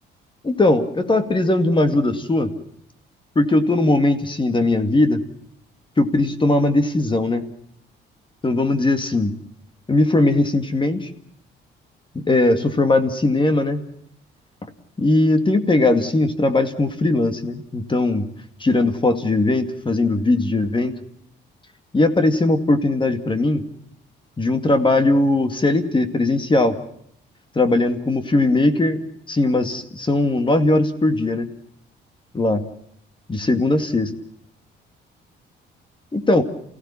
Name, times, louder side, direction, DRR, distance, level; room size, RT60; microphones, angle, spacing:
voice 1, 0.4-2.5 3.4-5.2 6.0-7.4 8.4-9.4 9.9-11.1 12.1-13.8 15.0-18.3 18.6-20.9 21.9-23.6 24.4-26.8 27.6-29.0 29.3-31.5 32.3-32.6 33.3-34.1 36.1-36.4, left 2 dB, 25° left, 8 dB, 2.3 m, -19 dB
28.5 x 16.5 x 7.3 m, 0.72 s
cardioid pair, 90°, 20 cm